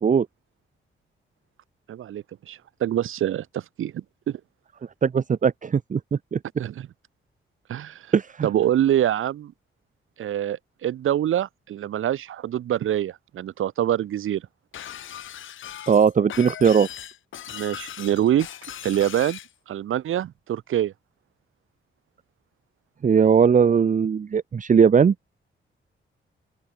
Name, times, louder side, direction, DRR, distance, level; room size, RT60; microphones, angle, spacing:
voice 1, 1.9-4.4 6.6-6.9 7.7-8.1 8.4-9.5 10.2-14.4 17.5-18.5 18.8-19.4 19.7-20.9, right 11 dB, 85° right, 1.3 m, -25 dB
voice 2, 5.0-6.4 8.1-8.5 15.9-16.9 23.0-25.1, right 6 dB, 40° right, 0.8 m, -19 dB
Shatter, 14.7-19.5, left 10 dB, 70° left, 0.9 m, -38 dB
open air
cardioid pair, 90°, 21 cm